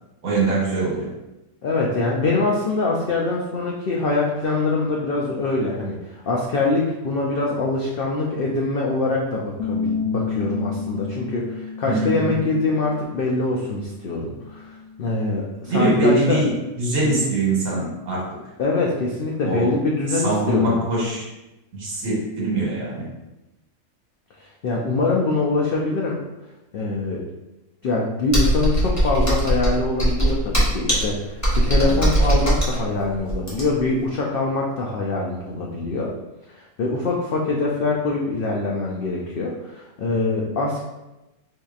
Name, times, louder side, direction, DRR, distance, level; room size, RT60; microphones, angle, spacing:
voice 1, 0.2-1.1 11.8-12.4 15.6-18.4 19.4-19.7 20.1-21.2 21.7-23.1, right 1 dB, 75° right, -5 dB, 1.5 m, -22 dB
voice 2, 1.6-16.4 18.6-20.8 24.4-26.2 26.7-27.2 27.8-36.1 36.5-40.8, left 3 dB, 90° left, -2 dB, 0.4 m, -24 dB
Bass guitar, 9.6-15.8, left 6 dB, 75° left, 1.0 m, -32 dB
Computer keyboard, 28.3-33.9, right 1 dB, 15° left, 0.7 m, -20 dB
4.3 x 2.7 x 2.4 m, 0.98 s
omnidirectional pair, 1.5 m